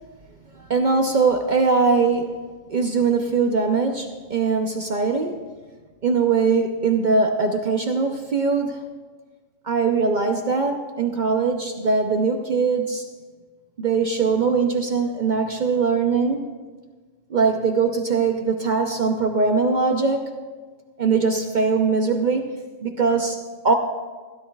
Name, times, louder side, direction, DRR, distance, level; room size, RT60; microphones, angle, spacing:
voice 1, 0.5-2.4 2.7-5.4 6.0-8.9 9.6-13.0 13.8-16.5 17.3-20.3 21.0-22.5 22.8-23.7, right 4 dB, 45° right, 4 dB, 0.7 m, -21 dB
16.0 x 12.5 x 2.3 m, 1.4 s
omnidirectional pair, 1.3 m